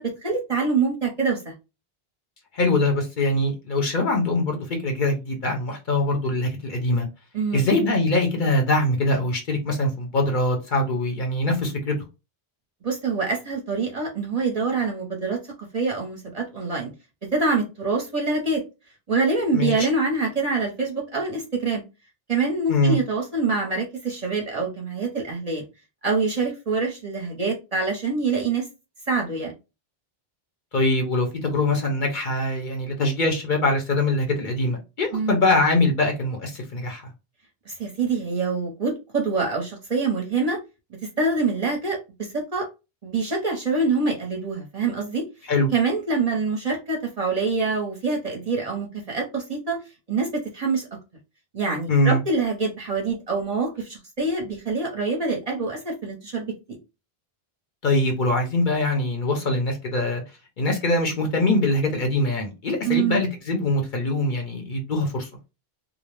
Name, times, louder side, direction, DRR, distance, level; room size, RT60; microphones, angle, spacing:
voice 1, 0.0-1.5 7.3-7.7 12.8-15.4 15.7-16.9 17.3-18.6 19.1-21.8 22.3-25.6 26.0-28.7 29.1-29.5 35.1-35.4 37.7-40.6 41.2-42.7 43.0-45.2 45.7-49.8 50.1-50.9 51.5-56.5 62.8-63.2, right 4 dB, 40° right, 0 dB, 0.7 m, -25 dB
voice 2, 2.5-7.1 7.5-11.9 19.5-19.7 22.7-23.0 30.7-37.0 45.5-45.7 51.9-52.2 57.8-60.2 60.6-65.3, left 2 dB, 55° left, 2 dB, 0.8 m, -23 dB
2.5 x 2.0 x 3.1 m, 0.28 s
omnidirectional pair, 1.0 m